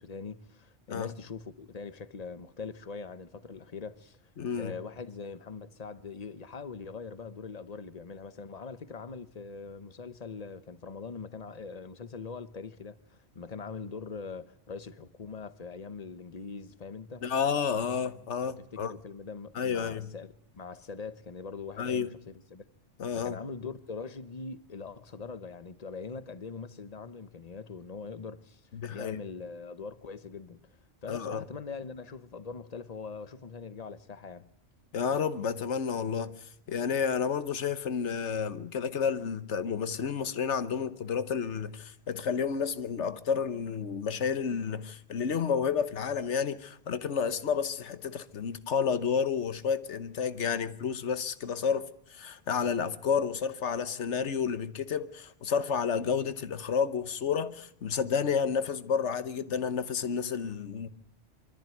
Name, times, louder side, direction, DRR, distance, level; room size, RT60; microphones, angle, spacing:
voice 1, 0.0-4.2 4.6-17.3 18.4-22.6 23.1-28.6 28.9-30.8 31.0-34.5, left 5 dB, 35° left, 0.9 m, -42 dB
voice 2, 4.4-4.7 17.2-18.9 19.5-20.1 21.8-22.1 23.0-23.4 28.7-29.2 31.1-31.4 34.9-36.3 36.7-60.9, left 6 dB, 70° left, 1.3 m, -30 dB
25.0 x 13.5 x 9.2 m
omnidirectional pair, 1.2 m